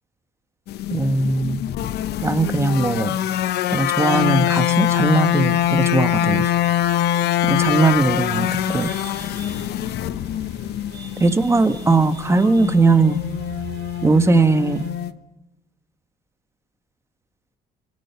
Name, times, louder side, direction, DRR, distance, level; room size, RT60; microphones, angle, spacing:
sound 1, 0.7-15.1, left 12 dB, 75° left, 1.0 m, -23 dB
voice 1, 0.9-1.6 2.2-3.1 3.7-6.5 7.4-8.9 11.2-13.2 14.0-14.8, right 3 dB, 15° right, 10 dB, 1.3 m, -19 dB
sound 2, 7.3-14.9, right 7 dB, 85° right, 5.6 m, -42 dB
29.0 x 16.5 x 5.9 m, 1.0 s
cardioid pair, 110°, 17 cm